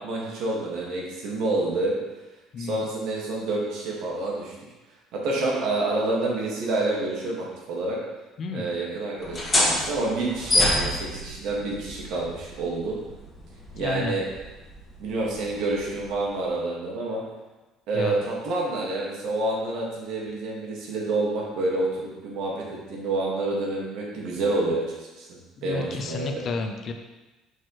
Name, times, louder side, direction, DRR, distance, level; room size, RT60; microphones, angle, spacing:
voice 1, 0.0-1.9 2.6-4.5 5.1-8.0 8.5-13.0 13.7-14.2 15.0-17.2 17.9-26.5, right 2 dB, 70° right, -3 dB, 1.7 m, -28 dB
sound 1, 9.2-16.5, left 1 dB, 10° left, 1.5 m, -29 dB
voice 2, 13.8-14.1 18.0-18.2 25.7-26.9, left 4 dB, 40° left, 5 dB, 0.6 m, -31 dB
6.4 x 6.0 x 3.1 m, 1.1 s
cardioid pair, 140°, 0 cm